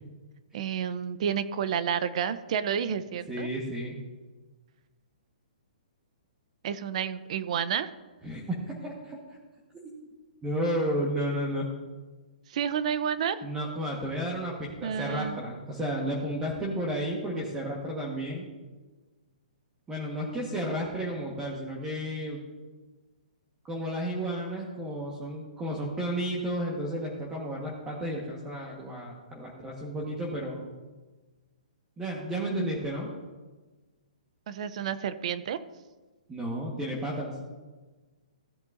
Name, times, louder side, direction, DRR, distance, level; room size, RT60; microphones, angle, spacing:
voice 1, 0.5-3.5 6.6-7.9 12.5-13.4 14.8-15.4 34.5-35.6, right 8 dB, 50° right, 13 dB, 0.6 m, -30 dB
voice 2, 3.3-3.9 8.2-8.4 8.7-9.2 10.4-11.7 13.4-18.5 19.9-22.4 23.6-30.6 32.0-33.1 36.3-37.3, equal, 10° right, -3 dB, 1.4 m, -32 dB
15.5 x 7.5 x 2.6 m, 1.3 s
hypercardioid pair, 150°, 5 cm